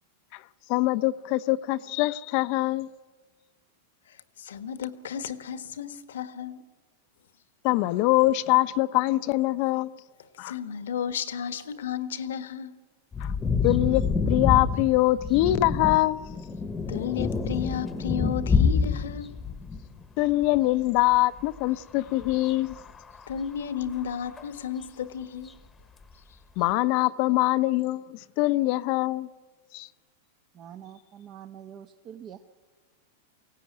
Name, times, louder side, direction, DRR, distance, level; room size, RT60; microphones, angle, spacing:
voice 1, 0.7-2.9 7.6-9.9 10.4-10.5 13.2-13.3 13.6-16.2 20.2-22.8 26.6-29.3 29.7-29.9, left 17 dB, 50° left, 0.7 m, -24 dB
voice 2, 4.4-6.6 10.4-12.8 16.9-19.4 23.3-25.5, left 8 dB, 85° left, 1.5 m, -33 dB
sound 1, 13.1-20.0 20.4-20.6 22.2-23.2 24.4-24.5, left 5 dB, 15° left, 1.2 m, -27 dB
voice 3, 30.5-32.4, right 9 dB, 35° right, 1.0 m, -45 dB
23.0 x 17.0 x 9.4 m
hypercardioid pair, 130°, 0 cm